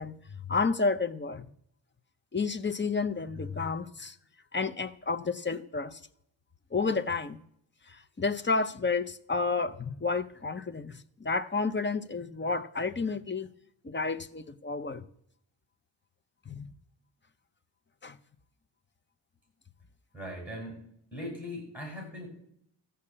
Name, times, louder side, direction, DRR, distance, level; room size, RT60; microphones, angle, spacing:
voice 1, 0.0-1.5 2.3-4.1 4.5-6.0 6.7-7.4 7.9-13.5 13.8-15.0 16.5-16.7 18.0-18.2, left 4 dB, 25° left, 0.6 m, -31 dB
voice 2, 20.1-20.8 21.1-22.3, left 1 dB, 5° right, 6.8 m, -39 dB
14.0 x 5.7 x 8.6 m
wide cardioid pair, 140°, 44 cm